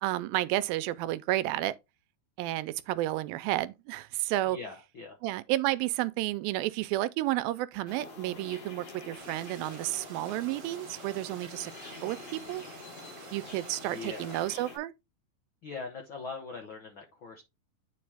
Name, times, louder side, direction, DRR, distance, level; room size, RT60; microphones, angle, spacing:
voice 1, 0.0-1.8 2.4-4.6 5.2-12.6 13.3-14.9, right 15 dB, 80° right, 2.2 m, -31 dB
voice 2, 4.5-5.2 13.3-14.4 15.6-17.4, left 4 dB, 85° left, 1.0 m, -42 dB
sound 1, 7.9-14.8, left 3 dB, 60° left, 5.1 m, -46 dB
sound 2, 9.2-14.5, right 8 dB, 60° right, 1.7 m, -51 dB
9.4 x 4.6 x 3.3 m
omnidirectional pair, 4.3 m